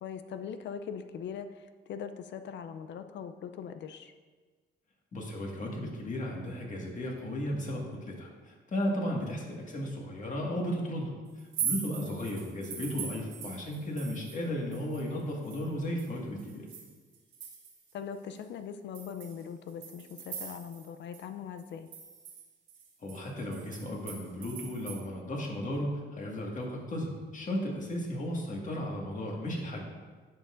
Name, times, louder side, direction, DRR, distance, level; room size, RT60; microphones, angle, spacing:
voice 1, 0.0-4.1 12.0-12.3 17.9-21.9, left 7 dB, 65° left, 9 dB, 0.4 m, -41 dB
voice 2, 5.1-11.1 11.6-16.6 23.0-29.8, equal, 40° left, -1 dB, 1.7 m, -35 dB
sound 1, 11.4-14.5 14.7-17.9 18.4-18.5 18.9-20.9 21.1-21.2 21.6-25.0, right 7 dB, 80° right, 1.2 m, -41 dB
10.5 x 5.6 x 2.5 m, 1.4 s
cardioid pair, 90°, 20 cm